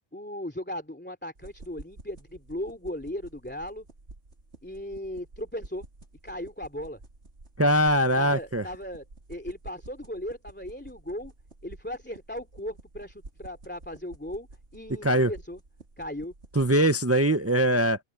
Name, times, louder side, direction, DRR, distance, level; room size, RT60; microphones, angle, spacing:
voice 1, 0.1-3.9 4.6-5.8 6.2-7.0 8.2-11.3 11.6-14.5 14.7-15.6 16.0-16.3, left 1 dB, 10° left, 2.8 m, -37 dB
sound 1, 1.3-16.7, right 2 dB, 80° right, 3.2 m, -50 dB
voice 2, 7.6-8.6 15.0-15.3 16.6-18.0, right 1 dB, 15° right, 0.6 m, -22 dB
omnidirectional pair, 1.1 m